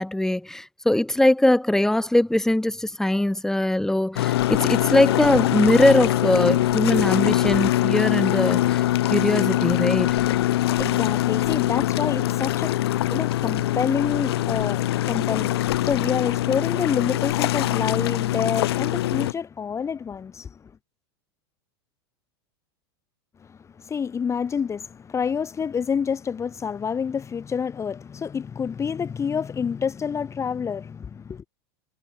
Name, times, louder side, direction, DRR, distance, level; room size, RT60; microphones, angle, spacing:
voice 1, 0.0-8.8 9.1-10.2, left 1 dB, 5° left, 2.5 m, -21 dB
sound 1, 4.2-19.3, left 14 dB, 80° left, 2.3 m, -23 dB
voice 2, 10.4-20.7 23.4-31.4, left 6 dB, 20° left, 2.0 m, -28 dB
hypercardioid pair, 115°, 13 cm